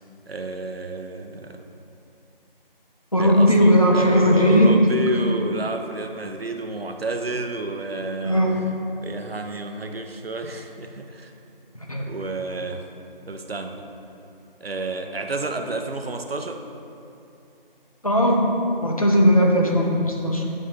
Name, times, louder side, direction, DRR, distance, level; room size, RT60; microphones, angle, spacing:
voice 1, 0.3-1.6 3.2-8.5 9.0-11.3 12.0-12.9 13.3-13.8 14.6-16.6 20.5-20.6, right 2 dB, 90° right, 5 dB, 0.8 m, -30 dB
voice 2, 3.1-5.0 8.2-8.6 11.9-12.0 18.0-18.4 18.8-20.4, equal, 40° left, -1 dB, 0.7 m, -17 dB
9.4 x 5.4 x 3.2 m, 2.7 s
figure-of-eight pair, 180°, 29 cm